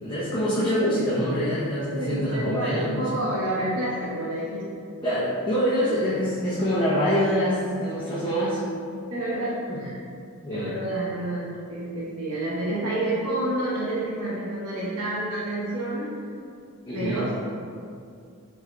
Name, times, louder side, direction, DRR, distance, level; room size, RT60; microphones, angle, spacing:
voice 1, 0.0-3.1 5.0-8.6 9.7-9.8 10.4-10.7 16.9-17.2, equal, 20° left, -10 dB, 0.7 m, -25 dB
voice 2, 1.9-4.8 8.4-8.5 9.1-9.9 10.5-16.1 16.9-17.3, right 1 dB, 85° right, -7 dB, 1.0 m, -29 dB
6.3 x 3.7 x 2.2 m, 2.3 s
head